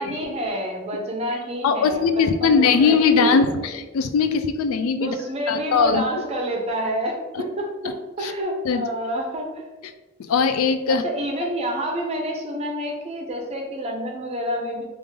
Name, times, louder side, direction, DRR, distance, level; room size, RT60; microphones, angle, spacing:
voice 1, 0.0-3.7 5.0-9.6 10.9-14.8, equal, 30° right, 1 dB, 0.6 m, -28 dB
voice 2, 1.6-5.1 5.5-6.0 8.2-8.3 8.6-8.8 10.2-11.0, left 5 dB, 75° left, 9 dB, 0.3 m, -20 dB
3.5 x 2.5 x 3.2 m, 1.2 s
head